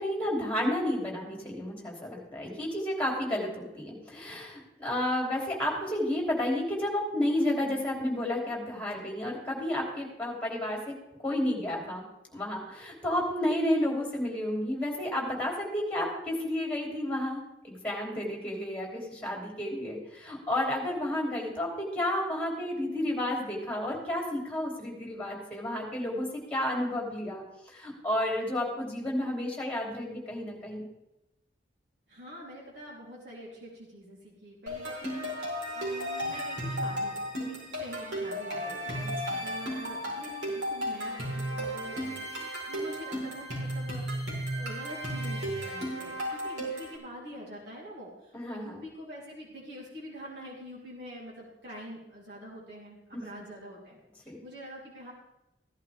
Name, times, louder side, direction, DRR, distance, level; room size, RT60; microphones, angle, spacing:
voice 1, 0.0-11.0 11.2-12.0 12.3-30.8 39.0-39.1 48.3-48.8 53.1-53.2 54.2-54.4, left 1 dB, 10° left, -1 dB, 3.2 m, -31 dB
voice 2, 32.1-42.2 42.7-44.2 44.5-55.1, equal, 70° right, -5 dB, 3.6 m, -45 dB
sound 1, 34.7-47.0, equal, 90° right, 4.5 m, -34 dB
16.0 x 11.0 x 3.6 m, 0.91 s
head